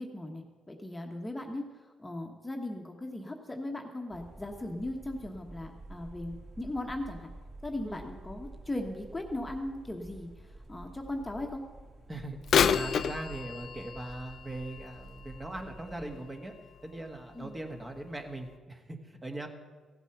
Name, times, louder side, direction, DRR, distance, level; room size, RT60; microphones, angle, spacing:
voice 1, 0.0-1.6 2.0-7.3 7.6-10.3 10.7-11.6 17.3-17.5, left 1 dB, 15° left, 3 dB, 1.2 m, -38 dB
sound 1, 4.1-16.2, right 1 dB, 45° right, 3.5 m, -50 dB
voice 2, 12.1-16.5 16.8-19.5, right 1 dB, 20° right, 3 dB, 1.5 m, -40 dB
Bird vocalization bird call bird song / Telephone, 12.4-16.3 16.8-16.9 17.7-17.8 18.5-18.6, left 8 dB, 60° left, 0.4 m, -30 dB
15.5 x 8.2 x 5.9 m, 1.4 s
cardioid pair, 90°, 0 cm